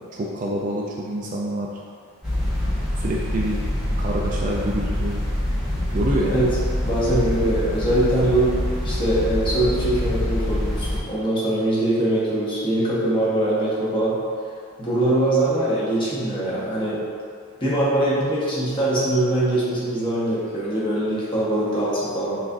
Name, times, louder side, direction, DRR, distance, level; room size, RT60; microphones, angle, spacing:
voice 1, 0.1-1.7 3.0-3.6 4.0-5.2 5.9-6.4, right 1 dB, 35° right, -2 dB, 0.3 m, -26 dB
sound 1, 2.2-11.0, left 1 dB, 5° right, 1.0 m, -25 dB
voice 2, 6.8-8.5 8.8-14.2 14.8-17.0 17.6-22.4, right 1 dB, 20° left, -8 dB, 0.9 m, -22 dB
6.0 x 2.4 x 2.5 m, 2.1 s
head